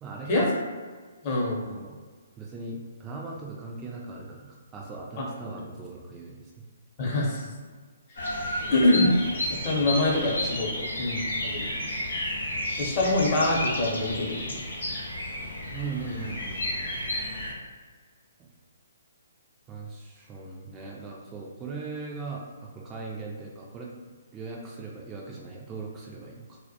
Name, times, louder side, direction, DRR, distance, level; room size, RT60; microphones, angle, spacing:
voice 1, 0.0-0.5 1.7-2.0 2.4-6.5 15.7-16.9 18.4-18.5 19.7-23.9 24.3-26.6, right 3 dB, 20° right, -2 dB, 0.3 m, -39 dB
voice 2, 1.2-1.6 7.0-7.5 8.7-9.1 9.5-11.7 12.8-14.6, left 2 dB, 35° left, -3 dB, 0.6 m, -25 dB
Bird vocalization bird call bird song, 8.2-17.5, left 1 dB, 80° left, 0.7 m, -32 dB
2.1 x 2.1 x 2.7 m, 1.5 s
figure-of-eight pair, 135°, 0 cm